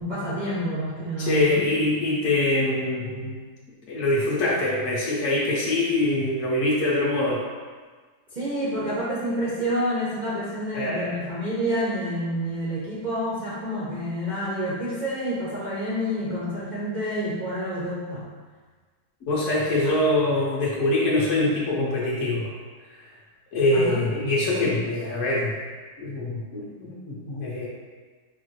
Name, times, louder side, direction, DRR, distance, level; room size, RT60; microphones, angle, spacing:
voice 1, 0.0-1.7 8.3-18.3 19.8-19.9 23.7-24.1, equal, 75° right, -8 dB, 0.4 m, -28 dB
voice 2, 1.2-3.4 3.9-7.4 10.7-11.2 19.3-22.5 23.5-25.5 26.0-27.7, left 2 dB, 60° left, -6 dB, 0.9 m, -24 dB
4.6 x 2.5 x 3.1 m, 1.5 s
omnidirectional pair, 1.8 m